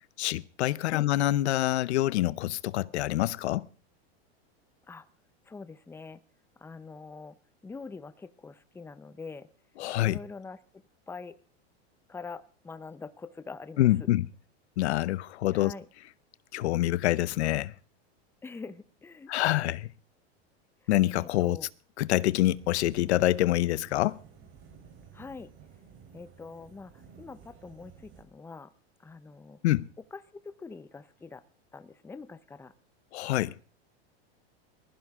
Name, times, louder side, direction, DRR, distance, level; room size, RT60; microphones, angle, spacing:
voice 1, 0.2-3.7 9.8-10.2 13.8-14.3 14.8-15.7 16.5-17.7 19.3-19.9 20.9-21.6 22.0-24.2 29.6-29.9 33.1-33.5, left 15 dB, 85° left, 0.8 m, -26 dB
voice 2, 5.5-6.2 6.6-7.4 7.6-9.5 10.0-11.4 12.1-14.1 15.5-15.9 18.4-19.3 20.8-20.9 21.2-21.7 25.1-25.5 26.1-26.9 27.2-28.7 29.0-29.6 30.1-31.4 31.7-32.7, left 4 dB, 5° left, 0.8 m, -44 dB
sound 1, 22.5-28.2, right 7 dB, 35° right, 4.1 m, -53 dB
21.0 x 15.0 x 3.7 m
supercardioid pair, 135°, 33 cm